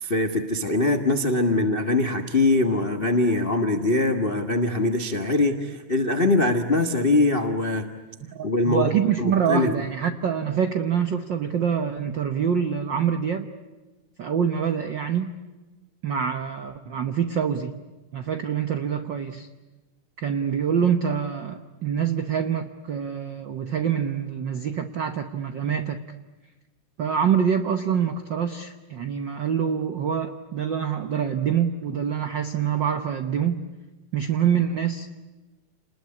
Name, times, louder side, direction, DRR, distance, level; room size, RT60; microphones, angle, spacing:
voice 1, 0.0-7.8 8.4-8.9 9.2-9.8, left 2 dB, 60° left, 6 dB, 0.5 m, -22 dB
voice 2, 8.3-13.5 14.2-15.4 16.0-17.8 18.1-19.5 20.2-26.0 27.0-33.6 34.1-35.1, right 8 dB, 80° right, 8 dB, 1.0 m, -25 dB
29.5 x 20.5 x 9.7 m, 1.2 s
omnidirectional pair, 3.6 m